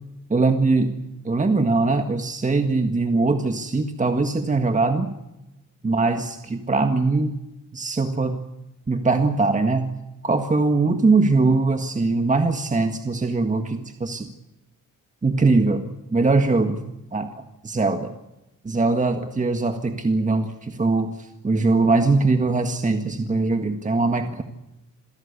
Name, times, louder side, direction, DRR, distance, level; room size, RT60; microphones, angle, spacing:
voice 1, 0.3-5.1 5.8-7.4 7.7-8.5 8.9-10.0 10.2-14.3 15.2-16.8 17.1-17.3 17.6-18.1 18.6-24.4, right 3 dB, 20° right, 6 dB, 1.7 m, -21 dB
27.0 x 17.5 x 8.5 m, 0.93 s
wide cardioid pair, 130°, 33 cm